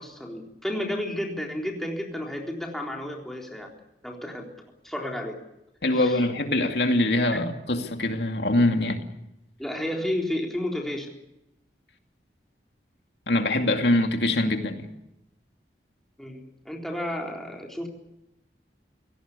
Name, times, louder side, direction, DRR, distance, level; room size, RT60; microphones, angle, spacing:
voice 1, 0.0-3.7 4.0-4.5 4.8-5.4 5.9-6.2 7.3-7.5 9.6-11.1 16.2-17.9, left 1 dB, ahead, 3.8 m, -32 dB
voice 2, 5.8-9.0 13.3-14.9, left 1 dB, 75° left, 2.4 m, -23 dB
27.0 x 17.5 x 8.3 m
head